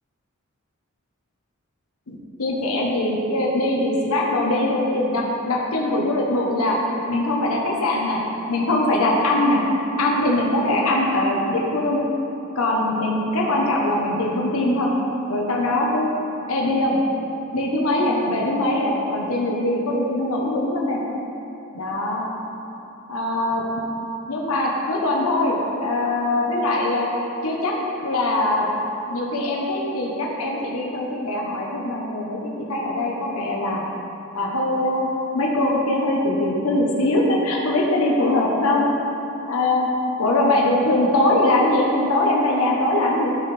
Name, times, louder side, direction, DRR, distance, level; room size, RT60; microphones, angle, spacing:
voice 1, 2.1-6.8 7.1-8.2 8.5-9.6 10.0-12.0 12.5-14.9 15.3-16.1 16.5-17.0 17.5-21.0 21.7-22.3 23.1-23.6 24.3-27.1 27.4-27.7 28.0-28.7 29.1-33.8 34.3-35.1 35.3-38.9 39.4-39.9 40.2-43.3, left 1 dB, 85° left, -2 dB, 0.9 m, -22 dB
12.0 x 5.9 x 3.3 m, 3.0 s
head